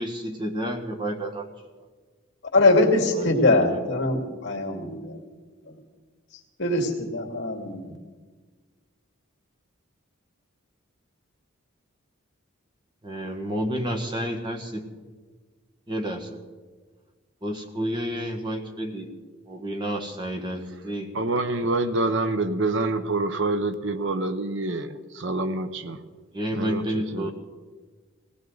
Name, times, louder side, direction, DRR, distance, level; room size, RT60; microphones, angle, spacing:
voice 1, 0.0-1.5 3.1-3.8 13.0-14.8 15.9-16.3 17.4-19.1 19.5-21.1 26.3-27.3, equal, 20° right, 2 dB, 1.5 m, -30 dB
voice 2, 2.5-5.2 6.6-7.9, left 2 dB, 55° left, 1 dB, 2.4 m, -22 dB
voice 3, 21.1-26.0 26.5-26.8 27.1-27.3, right 2 dB, 60° right, 10 dB, 0.8 m, -26 dB
19.5 x 17.0 x 3.9 m, 1.4 s
head